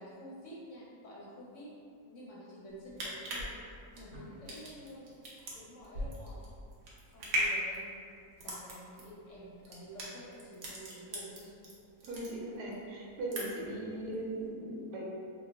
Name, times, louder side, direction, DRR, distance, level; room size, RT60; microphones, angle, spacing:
voice 1, 0.0-1.7 2.0-3.5 3.9-5.1 5.5-6.5 7.1-11.5, equal, 65° left, -6 dB, 0.8 m, -49 dB
sound 1, 2.7-11.7 12.0-12.8 13.1-13.8 14.1-14.2, equal, 70° right, 1.1 m, -38 dB
voice 2, 12.0-15.0, right 1 dB, 90° right, -4 dB, 1.2 m, -39 dB
3.1 x 2.1 x 3.4 m, 2.4 s
omnidirectional pair, 1.6 m